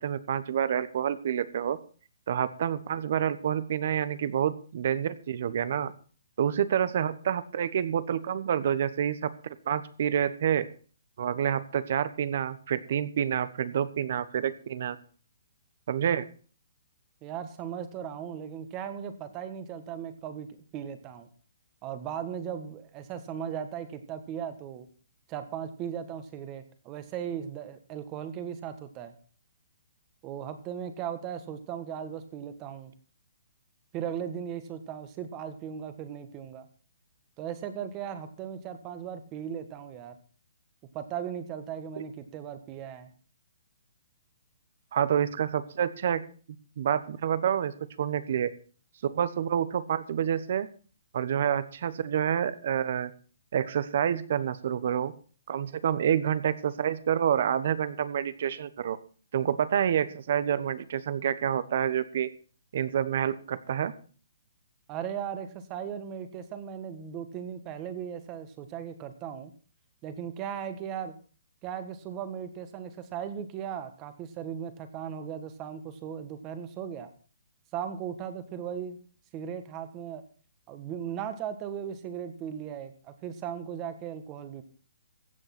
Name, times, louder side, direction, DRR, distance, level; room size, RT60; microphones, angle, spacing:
voice 1, 0.0-1.8 2.3-5.9 6.4-10.7 11.2-15.0 15.9-16.3 44.9-46.2 46.8-47.7 48.0-48.5 49.0-50.7 51.1-53.1 53.5-55.1 55.5-59.0 59.3-62.3 62.7-63.9, right 9 dB, 50° right, 16 dB, 1.1 m, -28 dB
voice 2, 17.2-21.3 21.8-24.9 25.3-29.1 30.2-32.9 33.9-36.7 37.4-40.1 40.9-43.1 64.9-69.5 70.0-71.1 71.6-77.1 77.7-79.0 79.3-80.2 80.7-84.6, right 8 dB, 20° right, 10 dB, 1.5 m, -37 dB
15.5 x 8.1 x 6.1 m, 0.40 s
hypercardioid pair, 160°, 0 cm